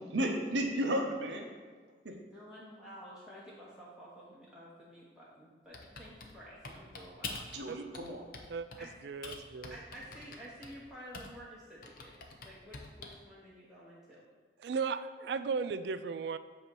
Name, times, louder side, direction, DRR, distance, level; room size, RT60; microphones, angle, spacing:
voice 1, 0.1-1.5 2.0-2.1 7.5-8.2, equal, 85° right, 2 dB, 0.8 m, -33 dB
voice 2, 2.3-7.4 8.8-8.9 9.7-12.1 12.4-14.2, equal, 5° right, -8 dB, 0.8 m, -51 dB
Typing, 5.7-7.6 7.9-8.9 9.2-11.5 11.8-13.3, left 3 dB, 50° left, 0.7 m, -45 dB
voice 3, 9.0-9.8 14.6-16.4, right 5 dB, 65° right, 12 dB, 0.3 m, -35 dB
8.0 x 2.8 x 6.0 m, 1.5 s
head